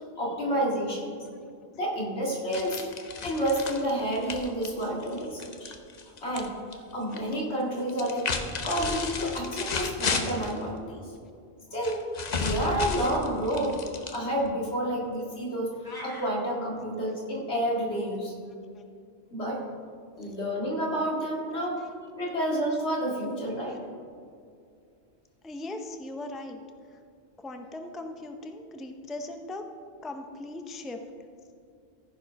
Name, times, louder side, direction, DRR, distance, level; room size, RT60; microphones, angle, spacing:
voice 1, 0.2-1.1 1.7-2.8 3.2-5.7 6.2-8.3 8.6-11.1 11.7-12.0 12.3-13.8 14.1-15.7 16.0-18.3 19.3-19.6 20.2-21.8 22.2-23.8, right 1 dB, 85° left, -3 dB, 2.4 m, -29 dB
sound 1, 2.5-6.5 6.7-7.3 7.9-10.6 11.8-14.5, left 4 dB, 45° left, 0.8 m, -33 dB
sound 2, 15.8-16.3, left 1 dB, 20° left, 1.2 m, -42 dB
voice 2, 25.4-26.6 26.9-27.0 27.4-29.6 30.0-31.0, left 2 dB, ahead, 5 dB, 0.4 m, -39 dB
14.5 x 5.0 x 5.1 m, 2.4 s
omnidirectional pair, 1.1 m